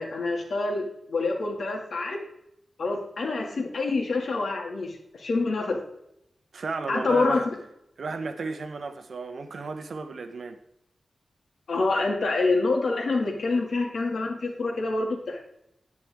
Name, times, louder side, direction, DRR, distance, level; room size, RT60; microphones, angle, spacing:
voice 1, 0.0-2.2 2.8-5.8 6.9-7.5 11.7-15.4, left 3 dB, 75° left, 2.4 m, -26 dB
voice 2, 6.5-7.5 8.0-10.6, right 4 dB, 70° right, 1.1 m, -33 dB
10.5 x 9.7 x 3.6 m
wide cardioid pair, 115°, 0 cm